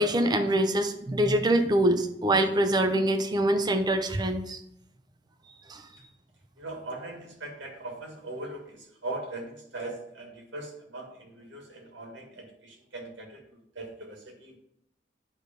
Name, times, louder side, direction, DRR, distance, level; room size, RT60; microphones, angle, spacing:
voice 1, 0.0-4.6 5.7-5.8, right 1 dB, 20° right, 6 dB, 0.6 m, -24 dB
voice 2, 6.6-13.4 13.8-14.6, right 2 dB, 70° right, 1 dB, 1.9 m, -40 dB
9.6 x 3.3 x 5.2 m, 0.77 s
head